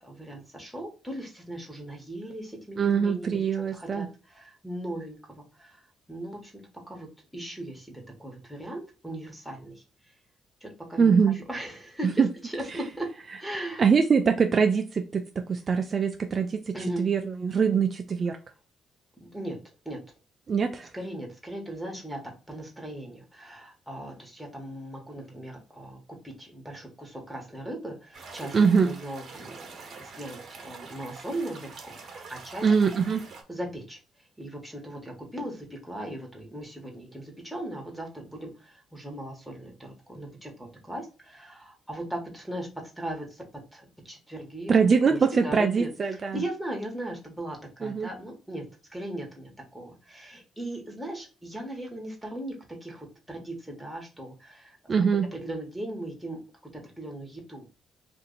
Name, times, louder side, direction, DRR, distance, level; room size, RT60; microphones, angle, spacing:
voice 1, 0.0-6.5 6.9-9.8 10.6-13.1 13.4-13.9 16.7-17.1 19.2-19.6 19.8-20.0 20.9-22.2 22.5-28.5 28.8-32.7 33.5-43.4 43.7-44.8 45.0-54.8 55.3-57.7, right 1 dB, ahead, 1.3 m, -38 dB
voice 2, 2.8-4.1 11.0-11.4 12.2-12.3 13.8-18.4 20.5-20.9 28.5-28.9 32.6-33.3 44.7-46.4 47.8-48.1 54.9-55.3, right 6 dB, 45° right, 0.3 m, -23 dB
sound 1, 28.1-33.4, right 4 dB, 60° right, 0.9 m, -45 dB
2.7 x 2.5 x 4.0 m
cardioid pair, 90°, 0 cm